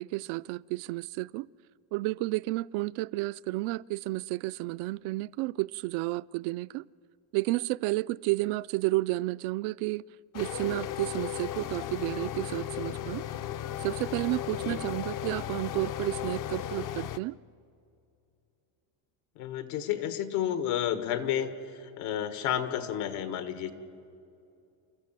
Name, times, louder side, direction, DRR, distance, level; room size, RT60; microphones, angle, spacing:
voice 1, 0.0-1.5 1.9-6.9 7.3-10.0 10.3-13.3 13.8-17.4, right 20 dB, 75° right, 18 dB, 0.5 m, -31 dB
sound 1, 10.3-17.2, left 11 dB, 40° left, 0.5 m, -35 dB
voice 2, 19.4-21.5 22.0-23.7, left 10 dB, 80° left, 9 dB, 1.8 m, -31 dB
29.0 x 14.5 x 7.5 m, 2.6 s
cardioid pair, 130°, 50 cm